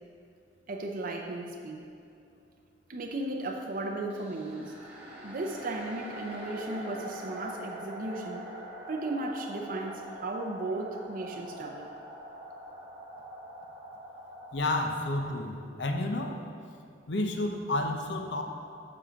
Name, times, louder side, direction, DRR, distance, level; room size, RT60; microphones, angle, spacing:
voice 1, 0.7-1.9 2.9-4.7 5.2-8.5 8.9-11.9, right 2 dB, 50° right, 1 dB, 0.6 m, -35 dB
sound 1, 4.1-14.6, right 1 dB, 10° right, 1.5 m, -43 dB
voice 2, 14.5-16.4 17.1-18.4, left 2 dB, 70° left, 3 dB, 0.8 m, -30 dB
7.6 x 5.7 x 5.1 m, 2.5 s
head